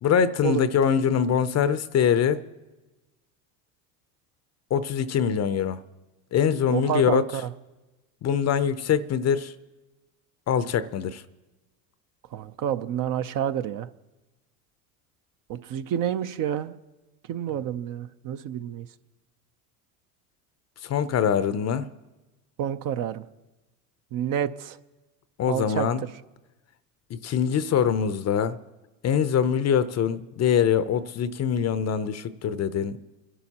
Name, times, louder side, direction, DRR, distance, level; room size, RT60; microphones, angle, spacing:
voice 1, 0.0-2.4 4.7-5.8 6.3-7.2 8.2-9.5 10.5-11.2 20.8-21.9 25.4-26.0 27.1-28.6 29.0-33.0, left 8 dB, 35° left, 0.6 m, -23 dB
voice 2, 6.7-7.5 12.3-13.9 15.5-16.7 17.3-18.9 22.6-23.2 24.1-24.8 25.5-26.1, right 10 dB, 45° right, 0.7 m, -29 dB
29.5 x 11.0 x 2.9 m
hypercardioid pair, 90°, 47 cm